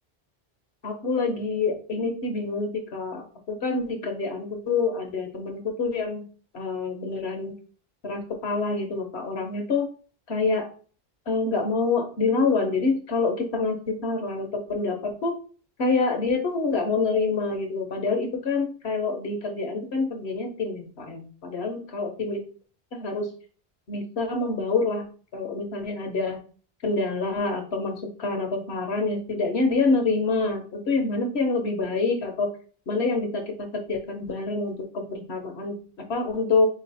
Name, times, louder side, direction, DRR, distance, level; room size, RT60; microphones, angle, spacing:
voice 1, 0.8-6.2 6.5-7.5 8.0-9.9 10.3-10.7 11.3-15.4 15.8-22.4 22.9-23.3 23.9-25.0 25.3-26.4 26.8-32.5 32.9-36.7, left 3 dB, 80° left, 4 dB, 1.3 m, -26 dB
4.0 x 3.1 x 4.1 m, 0.40 s
omnidirectional pair, 1.1 m